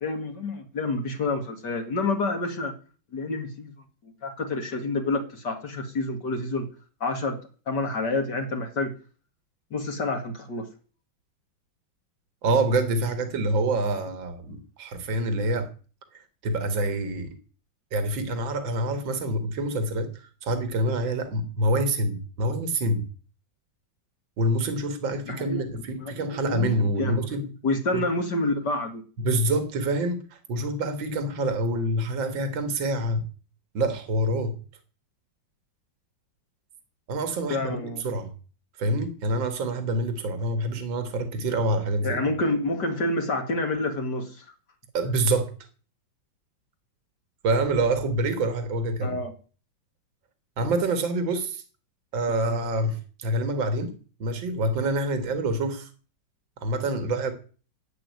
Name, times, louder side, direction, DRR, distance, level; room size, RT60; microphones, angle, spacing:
voice 1, 0.0-2.7 3.1-3.7 4.2-6.7 7.0-7.4 7.7-8.9 9.7-10.7 25.3-25.6 26.0-27.2 27.6-29.0 37.5-38.0 42.0-44.4 49.0-49.3 52.5-52.6, left 2 dB, 60° left, 2.6 m, -28 dB
voice 2, 12.4-15.7 16.1-17.4 17.9-23.1 24.4-27.5 27.9-28.0 29.2-33.2 33.7-34.6 37.1-37.8 38.0-38.3 38.8-42.2 44.9-45.5 47.4-49.1 50.6-51.6 52.1-55.9 56.6-57.3, right 1 dB, 70° right, 2.5 m, -26 dB
11.0 x 8.1 x 9.5 m
omnidirectional pair, 2.1 m